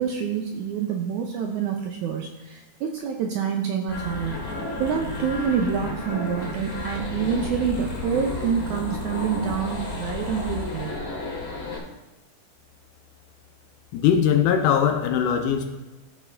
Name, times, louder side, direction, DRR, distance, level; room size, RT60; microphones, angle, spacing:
voice 1, 0.0-4.5 4.8-10.9, right 7 dB, 80° right, 2 dB, 1.7 m, -27 dB
sound 1, 3.9-11.8, left 2 dB, 45° left, 1.1 m, -32 dB
voice 2, 13.9-15.8, left 8 dB, 80° left, 5 dB, 1.8 m, -21 dB
13.5 x 4.6 x 3.3 m, 1.1 s
omnidirectional pair, 4.2 m